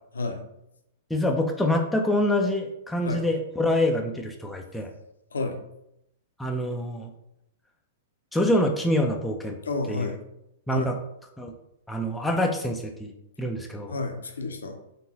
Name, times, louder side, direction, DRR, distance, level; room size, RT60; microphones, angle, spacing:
voice 1, 1.1-4.9 6.4-7.1 8.3-9.6 9.9-10.1 10.7-10.9 11.4-11.5 11.9-13.1 13.4-13.9, left 1 dB, 5° left, 1 dB, 0.5 m, -25 dB
voice 2, 9.6-10.2 10.7-10.9 13.9-14.8, left 3 dB, 75° left, 5 dB, 0.6 m, -30 dB
3.8 x 3.5 x 2.9 m, 0.80 s
figure-of-eight pair, 105°, 0 cm